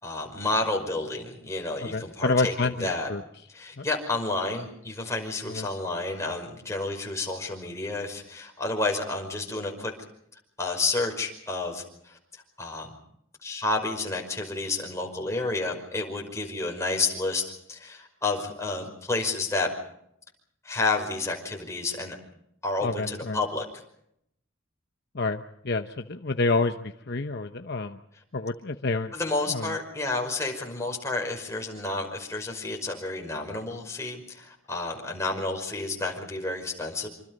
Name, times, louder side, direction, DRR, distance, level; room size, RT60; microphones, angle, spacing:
voice 1, 0.0-3.1 3.5-9.9 10.6-12.2 12.6-12.9 13.4-17.4 17.7-19.7 20.6-22.2 22.6-23.6 29.1-37.1, left 2 dB, 15° left, 1 dB, 5.4 m, -30 dB
voice 2, 1.8-3.2 3.8-3.9 5.5-5.7 22.8-23.4 25.1-28.0 28.3-29.1 29.5-29.7, left 3 dB, 50° left, 7 dB, 0.9 m, -28 dB
27.0 x 26.0 x 5.4 m, 0.74 s
head